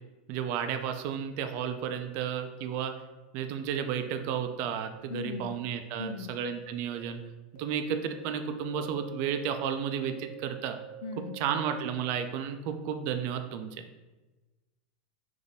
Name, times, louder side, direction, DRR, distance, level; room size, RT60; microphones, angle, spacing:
voice 1, 0.3-2.9 3.3-7.2 7.6-10.8 11.4-13.8, right 8 dB, 45° right, 7 dB, 0.4 m, -32 dB
sound 1, 2.9-3.0 3.9-4.0 4.9-5.0 5.9-6.0 6.9-7.0 7.6-7.7 8.1-8.2 8.6-11.8, right 10 dB, 55° left, 0.8 m, -47 dB
voice 2, 5.1-5.6 6.0-6.4 11.0-11.4, left 4 dB, 85° left, 8 dB, 0.4 m, -38 dB
3.5 x 2.6 x 3.9 m, 1.2 s
supercardioid pair, 150°, 4 cm